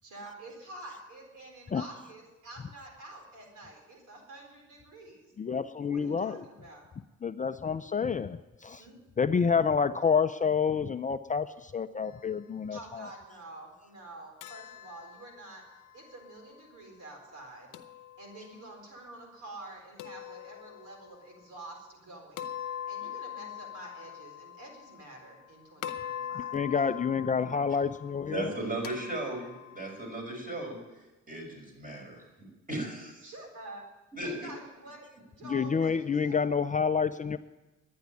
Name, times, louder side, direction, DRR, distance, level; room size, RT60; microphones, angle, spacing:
voice 1, 0.0-5.3 5.8-6.9 8.8-9.0 12.7-15.6 15.9-17.7 18.2-27.0 33.2-33.9 34.2-36.6, right 2 dB, 80° right, 1 dB, 4.3 m, -48 dB
voice 2, 5.4-6.4 7.2-8.8 9.2-12.8 26.5-28.5 35.5-37.4, left 6 dB, 25° left, 11 dB, 0.5 m, -28 dB
sound 1, 14.4-16.5 17.7-18.7 20.0-21.2 22.4-25.5 25.8-30.2, left 10 dB, 90° left, 0.8 m, -43 dB
voice 3, 28.3-32.3 32.7-33.3 34.1-34.5, right 2 dB, 30° right, 0 dB, 5.7 m, -37 dB
11.5 x 9.4 x 9.6 m, 1.1 s
cardioid pair, 90°, 30 cm